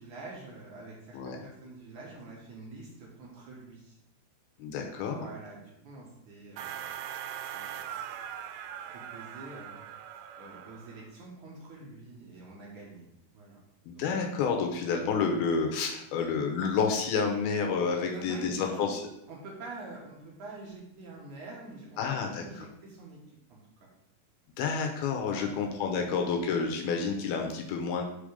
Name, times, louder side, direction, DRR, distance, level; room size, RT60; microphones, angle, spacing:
voice 1, 0.0-4.0 5.0-6.9 7.5-7.9 8.9-9.9 10.4-13.1 13.3-13.6 18.1-18.9 19.3-23.2 23.5-23.6 25.3-25.6 26.1-26.2, right 2 dB, 60° right, -3 dB, 2.4 m, -46 dB
voice 2, 4.6-5.2 13.9-19.0 22.0-22.4 24.6-28.0, left 5 dB, 80° left, 3 dB, 2.6 m, -29 dB
sound 1, 6.6-11.1, right 10 dB, 85° right, 2.6 m, -41 dB
6.0 x 5.0 x 5.1 m, 0.82 s
omnidirectional pair, 4.6 m